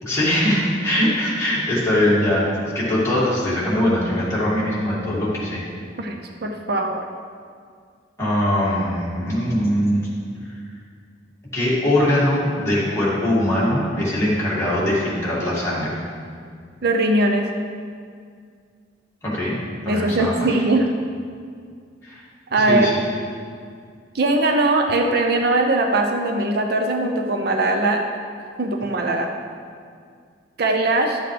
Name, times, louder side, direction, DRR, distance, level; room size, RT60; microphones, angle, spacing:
voice 1, 0.0-5.6 8.2-10.1 11.5-16.0 19.2-19.6 19.9-20.3 22.0-22.2 22.6-23.0, left 1 dB, 15° left, -9 dB, 2.4 m, -21 dB
voice 2, 6.0-7.0 16.8-17.5 19.9-20.9 22.5-22.9 24.1-28.0 28.6-29.3 30.6-31.2, right 2 dB, 55° right, 3 dB, 0.6 m, -20 dB
12.0 x 7.8 x 3.4 m, 2.2 s
head